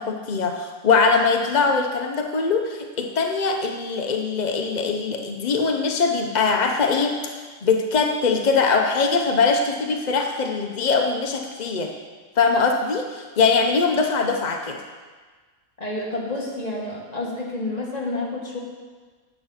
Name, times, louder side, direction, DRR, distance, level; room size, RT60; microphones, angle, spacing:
voice 1, 0.0-11.9 12.4-14.8, left 4 dB, 65° left, 3 dB, 0.4 m, -22 dB
voice 2, 15.8-18.6, left 2 dB, 25° left, -3 dB, 1.9 m, -29 dB
9.8 x 7.7 x 5.6 m, 1.4 s
omnidirectional pair, 1.8 m